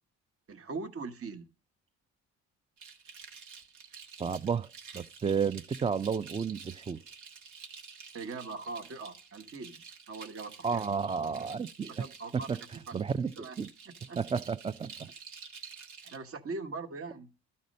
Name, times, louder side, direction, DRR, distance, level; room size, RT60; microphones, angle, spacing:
voice 1, 0.5-1.5 8.1-10.9 11.9-12.5 12.9-13.0 13.4-13.6 13.8-14.2 16.0-17.3, right 3 dB, 50° right, 1.2 m, -41 dB
sound 1, 2.8-16.2, right 6 dB, 80° right, 1.5 m, -50 dB
voice 2, 4.2-4.7 4.9-7.0 10.6-11.9 12.3-12.4 12.9-13.3 13.6-13.7 14.2-15.1, right 6 dB, 20° right, 0.4 m, -31 dB
12.0 x 4.3 x 5.2 m
cardioid pair, 90°, 30 cm